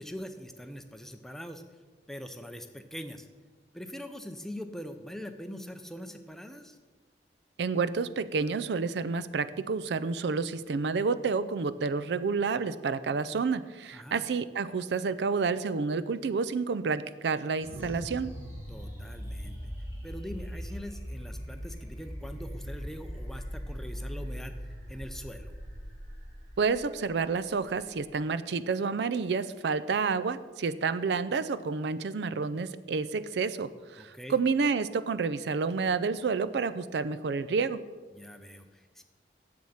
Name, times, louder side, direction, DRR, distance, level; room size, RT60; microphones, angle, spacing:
voice 1, 0.0-1.6 2.1-3.3 3.7-6.8 13.9-14.2 18.7-19.6 20.0-25.5 34.0-34.4 38.1-39.0, equal, ahead, 7 dB, 0.5 m, -43 dB
voice 2, 7.6-18.3 26.6-37.8, right 4 dB, 80° right, 14 dB, 0.4 m, -29 dB
sound 1, 17.6-28.3, equal, 15° right, 3.5 m, -40 dB
7.8 x 7.2 x 7.1 m, 1.3 s
head